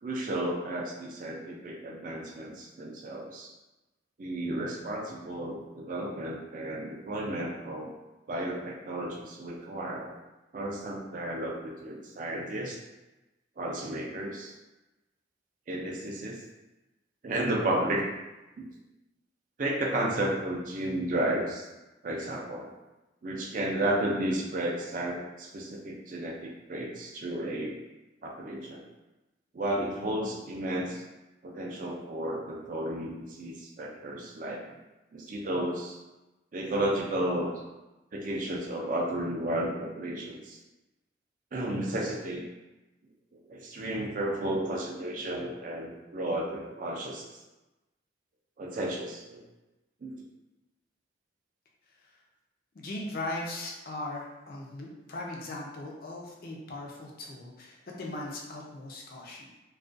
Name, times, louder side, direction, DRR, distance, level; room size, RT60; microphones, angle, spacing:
voice 1, 0.0-3.5 4.2-7.9 8.3-10.1 10.5-12.8 13.6-14.5 15.7-16.4 17.2-18.0 18.6-18.7 19.6-21.7 22.0-22.7 23.2-27.8 28.2-28.8 29.5-31.0 31.4-34.7 35.1-36.0 36.5-37.5 38.1-40.6 41.5-42.4 43.5-47.4 48.6-49.4 50.0-50.1, right 1 dB, 40° right, -1 dB, 0.4 m, -33 dB
voice 2, 52.7-59.5, left 2 dB, 45° left, -1 dB, 0.4 m, -39 dB
2.4 x 2.2 x 2.5 m, 1.1 s
head